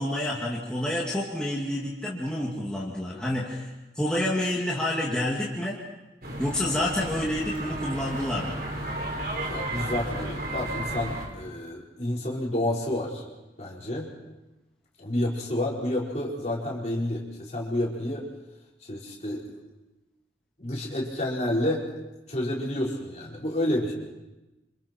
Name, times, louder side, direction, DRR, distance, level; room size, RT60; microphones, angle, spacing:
voice 1, 0.0-5.8 6.4-8.6, left 1 dB, 5° left, -5 dB, 2.5 m, -28 dB
sound 1, 6.2-11.3, right 1 dB, 55° right, 4.7 m, -33 dB
voice 2, 9.5-13.2 13.6-14.1 15.0-18.2 18.9-19.5 20.6-21.8 22.3-23.9, left 1 dB, 40° left, -4 dB, 4.9 m, -29 dB
29.5 x 27.0 x 4.6 m, 1.0 s
head